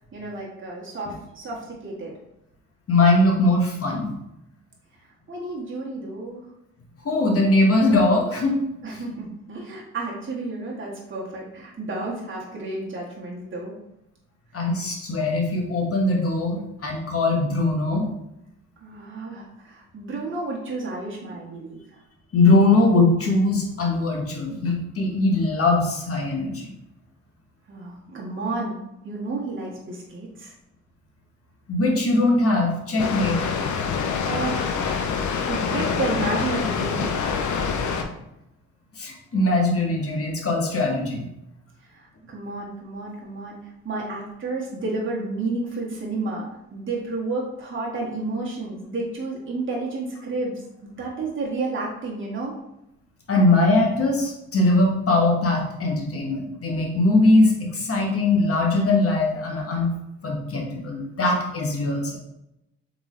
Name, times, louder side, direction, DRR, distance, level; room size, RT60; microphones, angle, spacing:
voice 1, 0.1-2.1 5.3-6.4 8.8-13.7 18.8-21.8 27.7-28.8 29.0-30.5 34.2-37.1 41.9-43.6 43.8-52.5, right 3 dB, 40° right, -4 dB, 1.4 m, -31 dB
voice 2, 2.9-4.1 7.0-8.6 14.5-18.1 22.3-26.7 31.7-33.4 39.0-41.2 53.3-59.9 60.2-62.2, left 2 dB, 50° left, 0 dB, 1.3 m, -21 dB
Water, 33.0-38.0, left 6 dB, 70° left, 0.6 m, -26 dB
3.8 x 3.7 x 3.2 m, 0.86 s
supercardioid pair, 60°, 30 cm